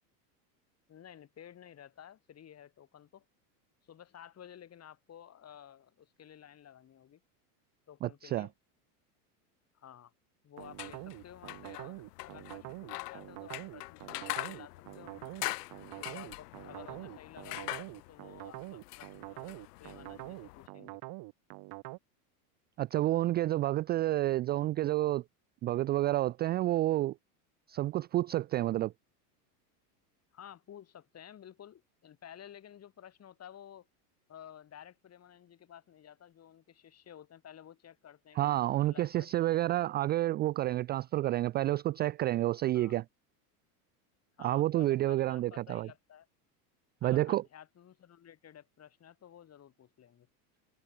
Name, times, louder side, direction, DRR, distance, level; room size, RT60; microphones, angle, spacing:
voice 1, 0.9-3.2 3.8-7.2 7.9-8.5 9.7-10.1 10.4-15.4 16.0-21.0 30.3-33.9 34.3-39.8 42.7-43.0 44.4-46.3 47.0-50.3, left 9 dB, 30° left, 7.5 m, -53 dB
voice 2, 8.0-8.5 22.8-25.2 25.6-27.1 27.7-28.9 38.4-43.0 44.4-45.9 47.0-47.4, right 15 dB, 25° right, 0.3 m, -29 dB
sound 1, 10.6-20.7, left 19 dB, 80° left, 1.2 m, -43 dB
sound 2, 10.6-22.0, right 23 dB, 55° right, 5.5 m, -45 dB
supercardioid pair, 115°, 47 cm